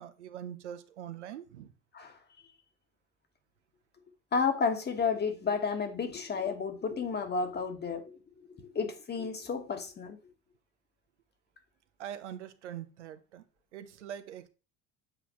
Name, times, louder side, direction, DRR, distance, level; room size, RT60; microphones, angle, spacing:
voice 1, 0.0-1.7 12.0-13.4 13.7-14.5, right 10 dB, 90° right, 0.6 m, -43 dB
voice 2, 4.3-8.1 8.7-10.2, left 5 dB, 30° left, 1.3 m, -31 dB
8.0 x 4.1 x 3.0 m
hypercardioid pair, 75°, 34 cm